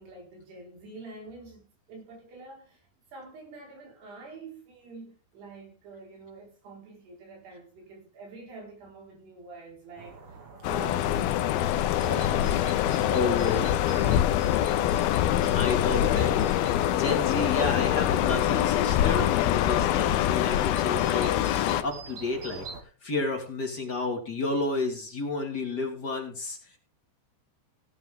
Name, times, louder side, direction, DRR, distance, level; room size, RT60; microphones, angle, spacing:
voice 1, 0.0-10.4 10.7-11.7 12.0-15.4, right 3 dB, 80° right, 6.8 m, -46 dB
sound 1, 10.0-22.8, right 4 dB, 45° right, 2.4 m, -47 dB
sound 2, 10.6-21.8, left 12 dB, 75° left, 2.5 m, -24 dB
voice 2, 12.7-13.6 15.5-16.4 16.9-21.5 21.8-26.8, left 3 dB, 30° left, 2.2 m, -31 dB
17.0 x 8.9 x 3.7 m
omnidirectional pair, 4.7 m